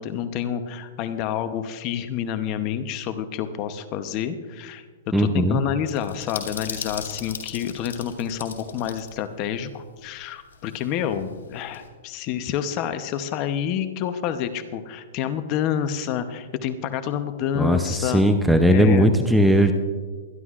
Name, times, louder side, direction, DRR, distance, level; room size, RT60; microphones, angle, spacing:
voice 1, 0.0-18.2 18.7-19.1, left 9 dB, 35° left, 9 dB, 0.8 m, -28 dB
voice 2, 5.1-5.6 17.6-19.7, equal, ahead, 6 dB, 0.6 m, -18 dB
sound 1, 5.9-9.1 9.4-9.5 10.5-11.9, left 6 dB, 85° left, 3.1 m, -37 dB
23.5 x 11.5 x 2.5 m, 1.5 s
hypercardioid pair, 150°, 0 cm